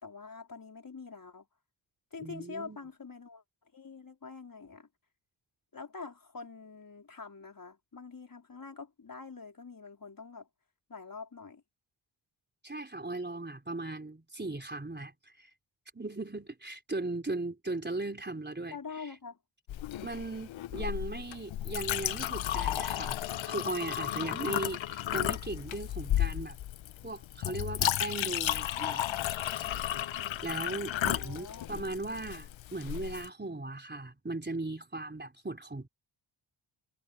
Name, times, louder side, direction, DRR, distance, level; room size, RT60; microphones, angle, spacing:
voice 1, 0.0-1.5 2.1-3.4 3.7-4.9 5.7-10.5 10.9-11.6 18.7-19.4 30.9-31.7, left 4 dB, 40° left, 4.1 m, -45 dB
voice 2, 2.2-2.8 12.6-15.1 15.4-15.5 15.9-18.8 20.0-23.2 23.4-26.6 27.0-29.1 30.4-35.9, right 2 dB, 20° right, 4.0 m, -38 dB
Chink clink, 19.7-33.3, left 12 dB, 70° left, 0.6 m, -33 dB
wide cardioid pair, 85°, 49 cm